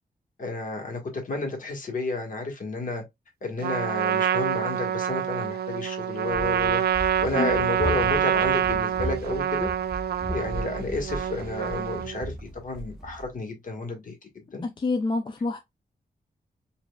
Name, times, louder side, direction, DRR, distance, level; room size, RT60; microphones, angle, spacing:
voice 1, 0.4-3.0 3.4-9.7 10.2-14.7, left 2 dB, 55° left, 1.4 m, -32 dB
Trumpet, 3.6-12.3, right 9 dB, 80° right, 0.4 m, -26 dB
Run, 6.3-13.3, equal, 5° right, 0.8 m, -36 dB
voice 2, 14.6-15.6, left 3 dB, 30° left, 0.4 m, -27 dB
5.2 x 2.6 x 2.2 m
wide cardioid pair, 160°, 16 cm